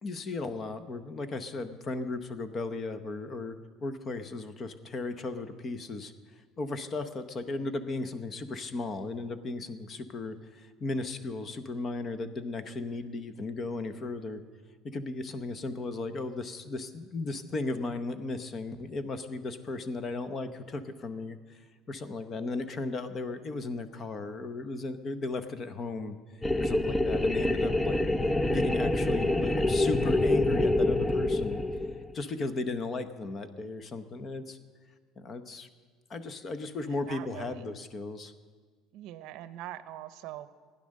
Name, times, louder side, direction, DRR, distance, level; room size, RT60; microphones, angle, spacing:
voice 1, 0.0-3.6 3.8-6.1 6.6-14.4 14.8-26.2 26.6-28.0 28.4-31.6 32.1-34.6 35.2-35.7 36.1-38.3, left 3 dB, 25° left, 11 dB, 0.8 m, -35 dB
sound 1, 26.4-32.2, left 2 dB, 10° left, 0.4 m, -26 dB
voice 2, 36.9-37.7 38.9-40.5, right 13 dB, 60° right, 13 dB, 0.7 m, -43 dB
15.5 x 10.0 x 6.5 m, 1.5 s
cardioid pair, 160°, 0 cm